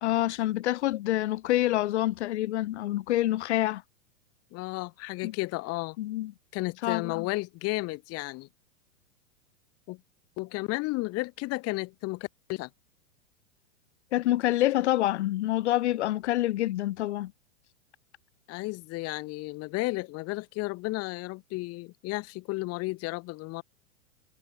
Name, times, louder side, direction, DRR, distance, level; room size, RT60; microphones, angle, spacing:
voice 1, 0.0-3.8 5.2-5.3 6.0-6.3 6.8-7.3 14.1-17.3, left 15 dB, 70° left, 1.4 m, -27 dB
voice 2, 4.5-6.0 6.5-8.5 9.9-10.0 10.4-12.7 18.5-23.6, left 23 dB, 40° left, 3.0 m, -33 dB
hypercardioid pair, 115°, 36 cm